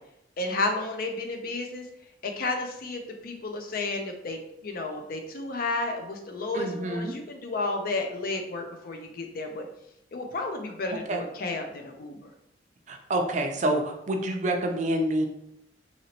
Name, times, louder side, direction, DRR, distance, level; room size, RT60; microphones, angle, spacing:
voice 1, 0.4-1.8 2.2-9.7 10.1-12.3, left 2 dB, 55° left, 4 dB, 0.5 m, -32 dB
voice 2, 6.5-7.1 11.1-11.2 12.9-15.3, right 1 dB, 40° right, 3 dB, 0.4 m, -27 dB
2.9 x 2.8 x 2.9 m, 0.79 s
head